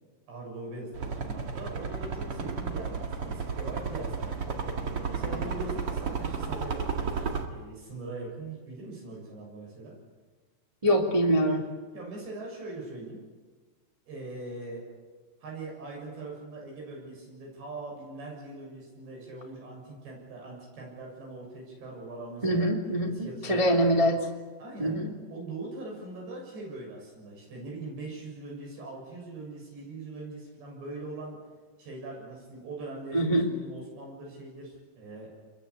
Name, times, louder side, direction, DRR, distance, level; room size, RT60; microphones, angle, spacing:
voice 1, 0.3-4.6 5.1-10.0 11.9-13.2 14.1-14.8 15.4-22.7 23.0-23.9 24.6-25.0 25.3-31.4 31.8-35.3, right 2 dB, 65° right, -1 dB, 9.2 m, -41 dB
sound 1, 0.9-7.5, right 5 dB, 45° right, 1.9 m, -33 dB
voice 2, 10.8-11.7 22.4-24.2 24.8-25.1 33.1-33.5, equal, 15° right, 0 dB, 1.1 m, -24 dB
27.5 x 22.5 x 8.4 m, 1.4 s
omnidirectional pair, 5.5 m